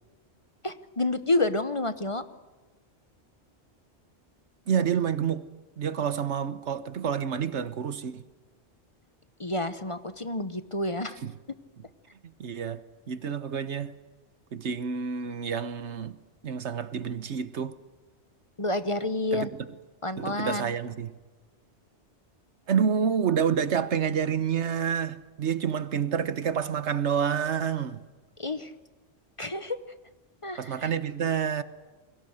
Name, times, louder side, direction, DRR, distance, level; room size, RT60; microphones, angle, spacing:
voice 1, 0.6-2.2 9.4-11.2 18.6-19.5 20.0-20.7 28.4-28.7 29.4-29.8 30.4-30.9, left 2 dB, 30° left, 1.0 m, -29 dB
voice 2, 4.7-5.5 5.8-8.2 11.2-11.3 12.2-14.0 14.5-16.2 16.4-17.8 19.3-19.5 20.2-21.1 22.7-28.0 30.6-31.6, right 7 dB, 80° right, 1.4 m, -28 dB
29.5 x 22.5 x 6.5 m
omnidirectional pair, 1.2 m